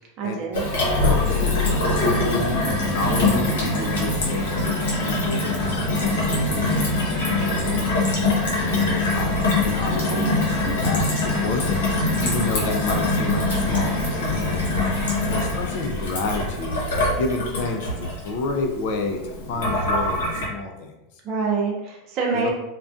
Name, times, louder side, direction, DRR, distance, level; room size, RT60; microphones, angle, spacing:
voice 1, 0.2-0.6 9.8-10.3 21.2-22.5, right 4 dB, 40° right, -2 dB, 0.5 m, -26 dB
Gurgling / Water tap faucet / Sink (filling or washing), 0.5-20.5, left 2 dB, 85° left, 0.8 m, -23 dB
voice 2, 1.0-8.1 8.5-15.0 15.3-16.8 17.2-20.9 22.3-22.5, left 3 dB, 65° left, 3 dB, 0.5 m, -30 dB
2.5 x 2.2 x 2.4 m, 0.93 s
supercardioid pair, 130°, 0 cm